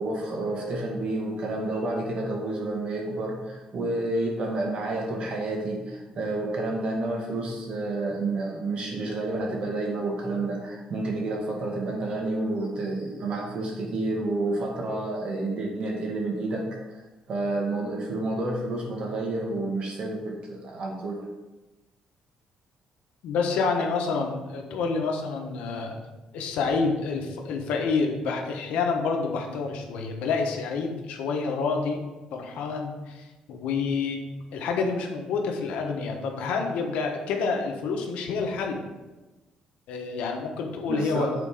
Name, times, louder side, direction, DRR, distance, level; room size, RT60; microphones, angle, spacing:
voice 1, 0.0-17.0 17.3-21.3 40.9-41.3, right 2 dB, 55° right, 0 dB, 1.9 m, -30 dB
voice 2, 23.2-26.0 26.3-32.0 32.3-34.2 34.5-38.8 39.9-41.3, left 4 dB, 90° left, 2 dB, 1.2 m, -28 dB
8.2 x 4.1 x 5.0 m, 1.1 s
cardioid pair, 125°, 2 cm